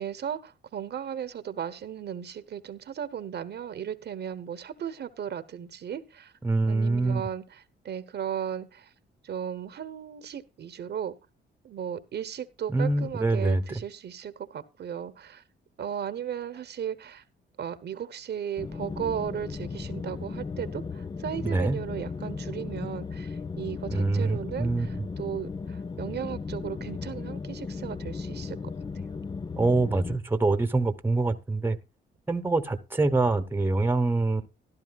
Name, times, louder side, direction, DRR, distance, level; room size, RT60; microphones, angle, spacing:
voice 1, 0.0-6.3 6.7-8.9 9.2-11.1 11.6-15.4 15.8-17.2 17.6-28.6 28.9-29.0, right 9 dB, 55° right, 12 dB, 1.0 m, -36 dB
voice 2, 6.4-7.2 12.7-13.8 21.4-21.8 23.9-24.9 29.6-31.8 32.3-34.5, right 2 dB, 10° right, 10 dB, 1.1 m, -25 dB
sound 1, 18.6-30.2, left 4 dB, 20° left, 0.5 m, -36 dB
14.5 x 12.0 x 2.4 m, 0.27 s
cardioid pair, 90°, 20 cm